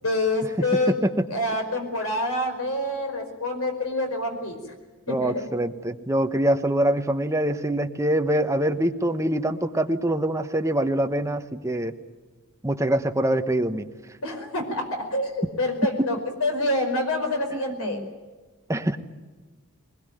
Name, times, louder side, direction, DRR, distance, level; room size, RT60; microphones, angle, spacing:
voice 1, 0.0-0.9 1.3-4.6 5.1-5.4 14.2-18.0, left 1 dB, 75° left, 4 dB, 5.1 m, -27 dB
voice 2, 5.1-11.9 12.6-13.9 17.5-18.1 18.7-19.0, right 1 dB, 15° right, 7 dB, 1.0 m, -24 dB
22.5 x 20.5 x 9.3 m, 1.3 s
head